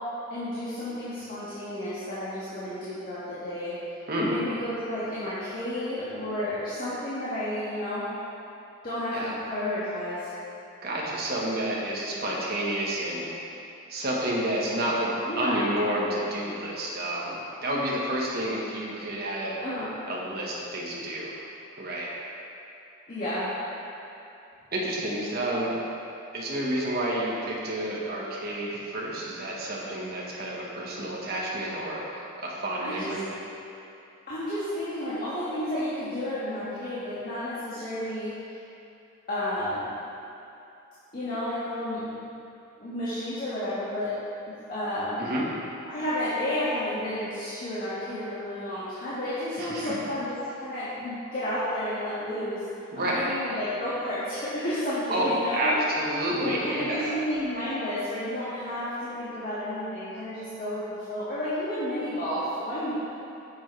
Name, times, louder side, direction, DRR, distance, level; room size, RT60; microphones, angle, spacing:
voice 1, 0.3-3.8 4.2-8.0 8.8-10.3 15.2-15.6 19.6-19.9 23.1-23.5 32.8-33.1 34.3-38.5 39.3-39.9 41.1-42.0 42.8-44.1 44.7-45.2 45.9-52.6 53.0-55.8 56.4-62.9, left 1 dB, 40° left, -12 dB, 1.8 m, -31 dB
voice 2, 4.1-4.4 9.1-9.3 10.8-13.5 13.9-15.1 15.4-19.6 20.1-21.4 21.8-22.1 24.7-25.8 26.3-33.2 45.2-45.4 49.6-50.0 52.9-53.3 55.1-57.1, right 1 dB, 45° right, -5 dB, 1.4 m, -29 dB
10.0 x 7.1 x 3.3 m, 2.7 s
head